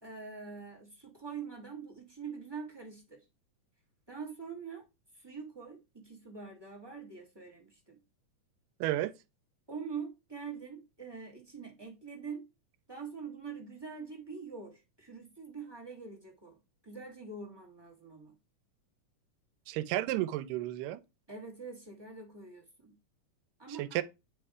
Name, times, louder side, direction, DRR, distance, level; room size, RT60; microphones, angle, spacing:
voice 1, 0.0-3.2 4.1-4.8 5.1-8.0 9.7-12.5 12.9-16.6 16.8-18.3 21.3-22.9 23.6-24.0, right 5 dB, 25° right, 0.5 m, -44 dB
voice 2, 8.8-9.1 19.7-21.0 23.8-24.0, right 14 dB, 85° right, 2.2 m, -32 dB
9.1 x 3.4 x 4.8 m
omnidirectional pair, 3.8 m